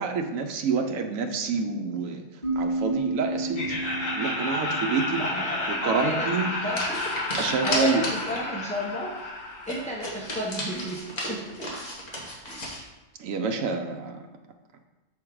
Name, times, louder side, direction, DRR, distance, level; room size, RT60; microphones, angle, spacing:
voice 1, 0.0-2.2 2.6-3.8 4.1-5.2 5.7-6.5 7.4-8.1 13.2-14.2, right 5 dB, 90° right, 5 dB, 1.0 m, -28 dB
sound 1, 2.4-6.0, right 2 dB, 35° right, 2.1 m, -32 dB
Laughter, 3.5-10.5, left 2 dB, 80° left, 1.6 m, -31 dB
voice 2, 5.1-6.3 6.6-9.3 9.7-11.7 12.5-12.7, equal, 10° left, -4 dB, 0.4 m, -33 dB
sound 2, 5.9-6.1 6.7-8.5 8.8-8.9 9.2-9.3 9.6-12.8, equal, 35° left, 1.3 m, -33 dB
6.9 x 3.7 x 4.6 m, 1.1 s
omnidirectional pair, 1.3 m